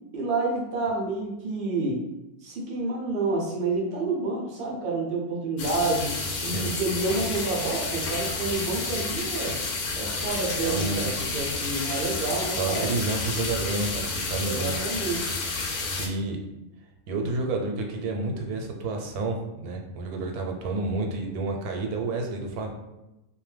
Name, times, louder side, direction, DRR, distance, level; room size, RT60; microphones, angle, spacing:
voice 1, 0.1-2.0 2.4-9.6 9.9-12.9 14.4-15.4, right 3 dB, 60° right, -2 dB, 0.5 m, -29 dB
sound 1, 5.6-16.1, left 3 dB, 90° left, 1.1 m, -30 dB
voice 2, 6.2-6.7 10.6-11.1 12.6-14.7 16.0-16.4 17.1-22.7, right 3 dB, 85° right, 2 dB, 1.1 m, -30 dB
2.6 x 2.1 x 3.1 m, 0.95 s
omnidirectional pair, 1.5 m